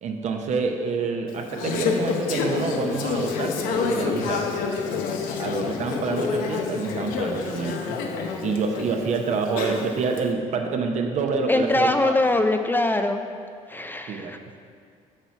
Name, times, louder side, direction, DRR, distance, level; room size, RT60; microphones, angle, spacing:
voice 1, 0.0-4.5 5.4-8.0 8.4-12.1 14.1-14.3, right 4 dB, 55° right, 4 dB, 0.8 m, -27 dB
Conversation / Chatter, 1.3-10.2, left 5 dB, 80° left, 0.7 m, -28 dB
voice 2, 11.5-13.2 13.7-14.4, left 2 dB, 15° left, 6 dB, 0.4 m, -22 dB
6.8 x 5.8 x 4.6 m, 2.2 s
cardioid pair, 95°, 14 cm